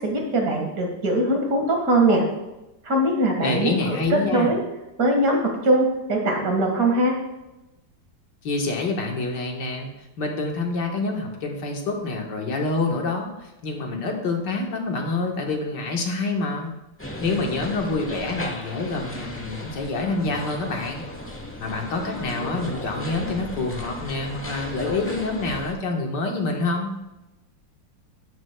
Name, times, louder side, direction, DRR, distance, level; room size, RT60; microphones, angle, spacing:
voice 1, 0.0-2.2 2.8-4.6 5.0-7.1, right 1 dB, 50° right, 1 dB, 2.1 m, -21 dB
voice 2, 3.4-4.5 8.4-9.9 10.2-16.7 17.2-21.1 21.6-26.9, left 3 dB, 70° left, 1 dB, 1.9 m, -27 dB
sound 1, 17.0-25.7, left 1 dB, 10° left, 0.7 m, -36 dB
12.5 x 9.7 x 2.2 m, 0.95 s
omnidirectional pair, 2.0 m